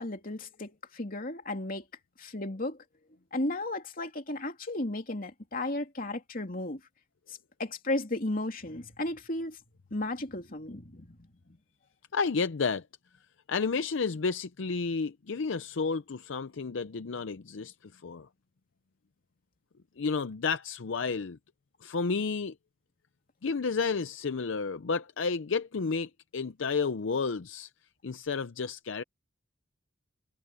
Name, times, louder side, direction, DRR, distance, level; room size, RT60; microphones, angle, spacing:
voice 1, 0.0-1.8 2.2-2.8 3.3-6.8 7.3-9.6 9.9-11.2 11.5-11.6, left 2 dB, 45° left, 3.0 m, -34 dB
voice 2, 12.1-12.8 13.5-17.7 18.0-18.3 20.0-21.4 21.8-22.5 23.4-27.7 28.0-29.0, left 4 dB, 70° left, 0.6 m, -31 dB
head